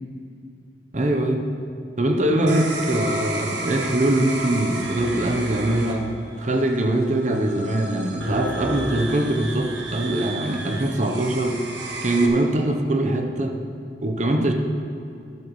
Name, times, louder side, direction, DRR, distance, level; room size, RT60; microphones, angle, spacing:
voice 1, 0.9-1.5 2.0-6.1 6.4-11.6 12.0-13.6 14.0-14.5, right 1 dB, 40° right, 4 dB, 0.8 m, -22 dB
sound 1, 2.5-12.3, right 1 dB, 90° right, 1.2 m, -32 dB
12.0 x 12.0 x 3.1 m, 2.6 s
head